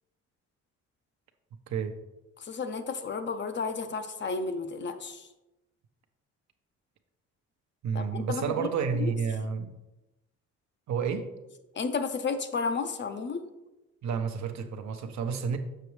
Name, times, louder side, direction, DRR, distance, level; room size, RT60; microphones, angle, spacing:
voice 1, 2.4-5.3 7.9-8.7 9.0-9.1 11.7-13.5, left 4 dB, 40° left, 9 dB, 0.6 m, -32 dB
voice 2, 7.8-9.7 10.9-11.3 14.0-15.6, right 6 dB, 65° right, 7 dB, 0.8 m, -30 dB
6.7 x 5.9 x 3.2 m, 0.98 s
cardioid pair, 90°, 30 cm